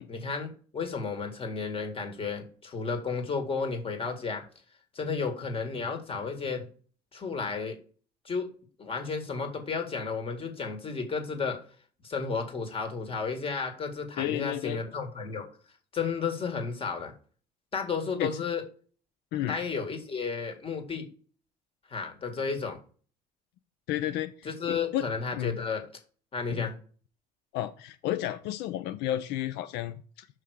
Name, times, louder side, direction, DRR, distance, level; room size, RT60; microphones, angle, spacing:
voice 1, 0.1-4.4 4.9-6.6 7.1-7.8 8.3-8.5 8.8-11.6 12.0-15.5 15.9-17.1 17.7-18.6 19.5-21.1 21.9-22.8 24.4-25.8 26.3-26.7, left 5 dB, 35° left, 5 dB, 1.9 m, -32 dB
voice 2, 14.2-14.8 18.2-18.3 19.3-19.6 23.9-25.1 25.3-25.6 26.5-26.7 27.5-30.3, left 13 dB, 90° left, 11 dB, 0.5 m, -32 dB
5.7 x 4.8 x 6.4 m, 0.41 s
cardioid pair, 110°, 17 cm